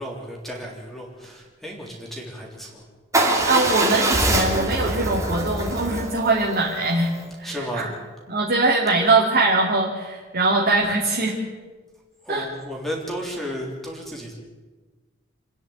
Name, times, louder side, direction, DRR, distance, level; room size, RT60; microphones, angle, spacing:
voice 1, 0.0-2.8 7.4-7.9 12.2-14.3, equal, ahead, -1 dB, 3.4 m, -33 dB
Motorcycle / Engine starting / Idling, 3.1-7.2, right 1 dB, 15° right, 3.0 m, -24 dB
voice 2, 3.4-7.1 7.4-7.9 8.3-11.4 12.3-12.5, right 2 dB, 50° right, -2 dB, 2.7 m, -22 dB
27.5 x 10.0 x 9.3 m, 1.3 s
head